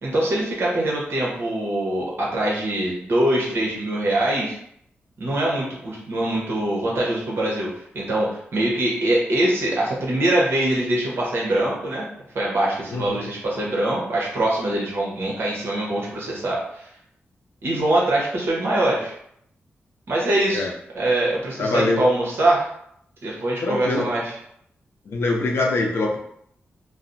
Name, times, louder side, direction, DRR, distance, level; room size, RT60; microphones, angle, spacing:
voice 1, 0.0-4.6 5.2-12.1 12.3-16.9 17.6-19.1 20.1-20.7 20.9-22.7 23.2-24.3, right 1 dB, 65° right, -4 dB, 0.9 m, -23 dB
voice 2, 12.9-13.3 20.5-20.7 21.6-22.0 23.6-24.1 25.1-26.2, left 2 dB, 75° left, 0 dB, 0.5 m, -23 dB
2.5 x 2.0 x 2.6 m, 0.70 s
wide cardioid pair, 110°, 4 cm